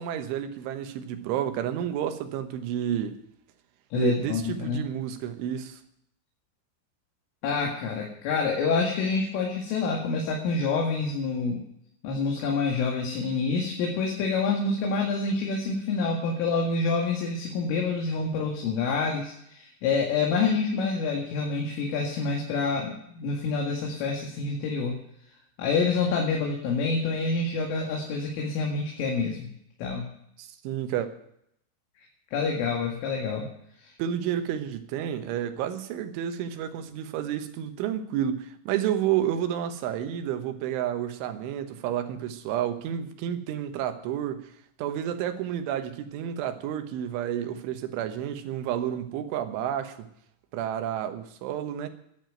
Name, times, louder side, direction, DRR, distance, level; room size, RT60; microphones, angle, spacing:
voice 1, 0.0-3.2 3.9-5.8 30.4-31.1 34.0-44.5 44.8-50.1 50.5-51.9, right 10 dB, 80° right, 3.6 m, -30 dB
voice 2, 3.9-4.8 7.4-11.6 12.0-25.0 25.6-29.5 29.8-30.1 32.3-33.4 33.8-33.9, left 4 dB, 80° left, 4.6 m, -27 dB
11.0 x 10.5 x 9.3 m
omnidirectional pair, 5.6 m